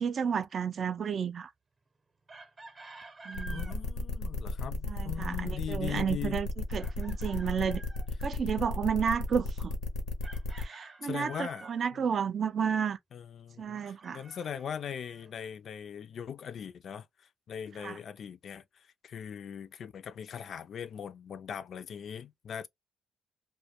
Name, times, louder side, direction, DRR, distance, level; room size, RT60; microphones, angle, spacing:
voice 1, 0.0-1.5 3.3-3.7 4.9-6.5 6.7-7.8 8.2-9.8 10.6-13.0 13.6-14.2 17.8-18.0, right 7 dB, 50° right, 0.3 m, -31 dB
Chicken rooster, 2.3-3.8 6.8-8.1 10.2-11.8 13.7-15.3, right 2 dB, 35° right, 0.7 m, -50 dB
sound 1, 3.3-10.6, left 3 dB, 90° left, 0.6 m, -34 dB
voice 2, 3.5-6.4 11.0-11.7 11.9-12.1 13.1-22.7, left 8 dB, 60° left, 0.3 m, -40 dB
2.2 x 2.1 x 2.7 m
cardioid pair, 90°, 0 cm